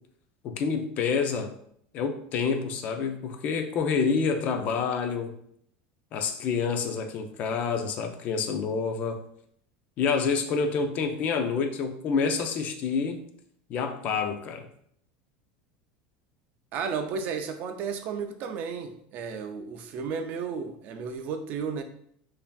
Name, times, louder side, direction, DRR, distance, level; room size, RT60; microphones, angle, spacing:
voice 1, 0.4-1.6 1.9-5.3 6.1-9.2 10.0-13.2 13.7-14.7, left 5 dB, 35° left, 6 dB, 0.4 m, -28 dB
voice 2, 16.7-21.8, right 6 dB, 35° right, 7 dB, 0.4 m, -33 dB
5.4 x 2.6 x 2.3 m, 0.67 s
supercardioid pair, 170°, 5 cm